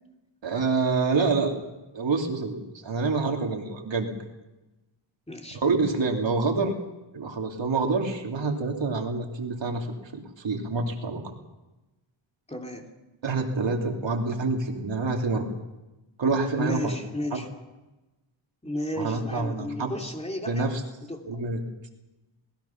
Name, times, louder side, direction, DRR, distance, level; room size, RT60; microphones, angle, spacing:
voice 1, 0.4-1.6 1.9-4.1 5.5-6.7 7.1-9.9 10.1-11.2 13.2-15.5 16.2-17.0 17.3-17.4 19.0-19.9 20.5-20.8 21.3-21.6, right 3 dB, 65° right, 2 dB, 2.8 m, -27 dB
voice 2, 5.3-5.6 12.5-12.9 16.6-17.5 18.6-20.7 21.0-21.4, left 1 dB, 15° left, 2 dB, 2.7 m, -33 dB
26.5 x 20.0 x 5.9 m, 1.1 s
wide cardioid pair, 155°, 48 cm